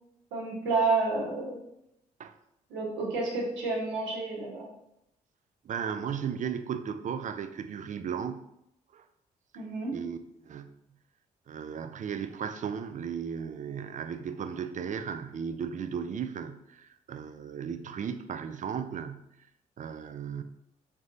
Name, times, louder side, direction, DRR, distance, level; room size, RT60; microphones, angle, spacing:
voice 1, 0.3-1.6 2.7-4.7 9.5-10.0, right 3 dB, 75° right, -3 dB, 1.2 m, -30 dB
voice 2, 5.6-8.4 8.9-9.0 9.9-10.2 10.4-10.7 11.5-19.3 19.8-20.4, right 7 dB, 40° right, 9 dB, 0.4 m, -35 dB
3.9 x 3.3 x 2.6 m, 0.81 s
hypercardioid pair, 45°, 19 cm